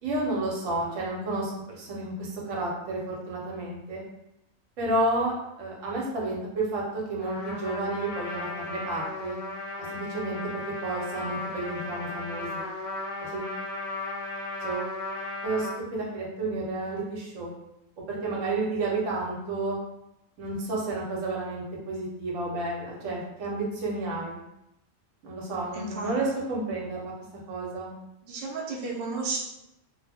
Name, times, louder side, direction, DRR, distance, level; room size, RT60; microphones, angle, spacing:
voice 1, 0.0-4.0 4.8-9.4 9.9-10.5 10.8-12.6 13.2-13.6 14.6-14.9 15.4-17.5 18.1-19.8 20.4-24.4 25.2-27.1 27.5-27.9, right 2 dB, 80° right, -3 dB, 1.1 m, -31 dB
Trumpet, 7.2-15.8, left 2 dB, 70° left, 0.9 m, -35 dB
voice 2, 25.7-26.1 28.2-29.4, right 3 dB, 60° right, -3 dB, 0.7 m, -33 dB
2.3 x 2.0 x 3.3 m, 0.86 s
omnidirectional pair, 1.3 m